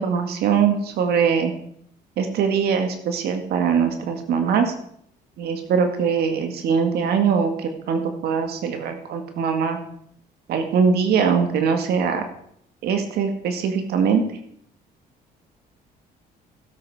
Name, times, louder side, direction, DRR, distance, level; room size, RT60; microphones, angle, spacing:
voice 1, 0.0-1.5 2.2-4.7 5.4-9.8 10.5-12.2 12.8-14.2, right 6 dB, 70° right, 6 dB, 1.9 m, -22 dB
16.0 x 8.0 x 4.8 m, 0.69 s
cardioid pair, 110°, 17 cm